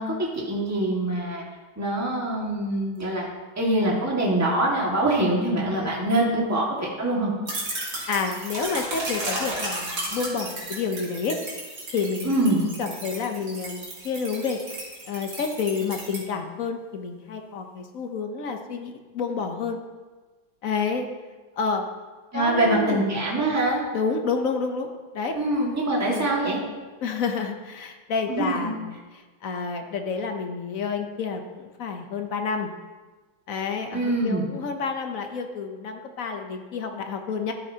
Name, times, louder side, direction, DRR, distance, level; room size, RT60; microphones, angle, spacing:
voice 1, 0.0-1.4 1.8-3.3 3.6-7.3 12.2-12.6 22.3-23.8 25.3-26.6 28.3-28.7 33.9-34.4, right 1 dB, 10° right, -4 dB, 1.6 m, -24 dB
sound 1, 7.5-16.2, right 1 dB, 50° right, 3.3 m, -33 dB
voice 2, 7.8-12.4 12.8-14.8 15.1-19.8 20.6-21.1 21.6-21.9 22.3-23.1 23.9-24.9 25.1-25.4 26.1-26.3 27.0-29.0 29.4-32.7 33.5-37.5, left 5 dB, 60° left, 5 dB, 0.9 m, -29 dB
12.0 x 8.9 x 2.8 m, 1.3 s
omnidirectional pair, 2.2 m